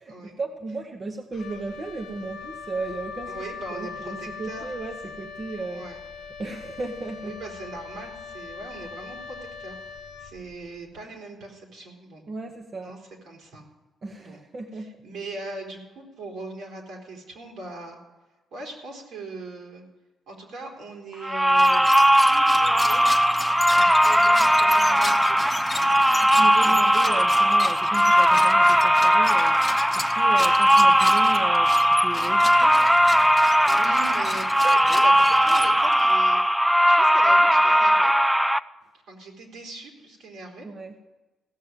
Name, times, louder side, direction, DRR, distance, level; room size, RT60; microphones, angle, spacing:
voice 1, 0.0-5.8 6.4-7.3 12.3-13.0 14.0-15.0 26.2-33.3 34.6-35.0 40.6-41.0, right 3 dB, 40° right, 4 dB, 1.0 m, -35 dB
Wind instrument woodwind instrument, 1.3-10.8, left 5 dB, 80° left, 0.7 m, -40 dB
voice 2, 3.3-4.7 5.7-6.0 7.2-9.7 10.2-12.2 12.8-13.0 13.3-13.7 14.2-14.4 15.0-18.0 18.5-19.8 20.3-21.9 22.2-23.1 23.7-25.6 26.5-27.1 33.3-36.4 36.9-38.1 39.1-40.7, right 2 dB, 75° right, -1 dB, 3.6 m, -40 dB
sound 1, 21.2-38.6, equal, 5° right, 0.4 m, -19 dB
sound 2, 21.5-36.1, left 2 dB, 15° left, 0.9 m, -35 dB
16.0 x 6.7 x 7.5 m, 1.1 s
cardioid pair, 90°, 0 cm